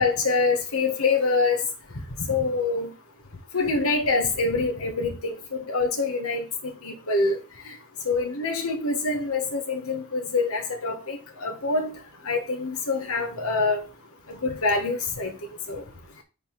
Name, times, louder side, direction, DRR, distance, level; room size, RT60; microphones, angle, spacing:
voice 1, 0.0-1.6 2.3-2.9 3.5-7.4 8.0-11.9 12.2-13.8 14.4-15.3 15.7-15.8, left 3 dB, 75° left, 1.4 m, -25 dB
5.3 x 3.9 x 5.9 m
head